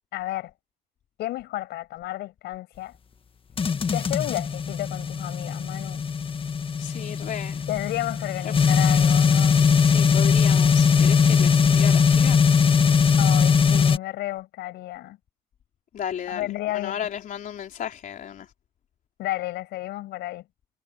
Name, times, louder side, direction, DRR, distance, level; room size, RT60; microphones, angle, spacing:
voice 1, 0.1-0.5 1.2-3.0 3.9-6.1 7.7-9.7 13.2-15.2 16.3-17.0 19.2-20.5, left 16 dB, 80° left, 7.5 m, -32 dB
sound 1, 3.6-14.0, left 6 dB, 30° left, 1.4 m, -20 dB
voice 2, 6.8-7.7 8.4-8.7 9.8-12.5 15.9-18.5, left 9 dB, 55° left, 4.0 m, -34 dB
cardioid pair, 110°, 17 cm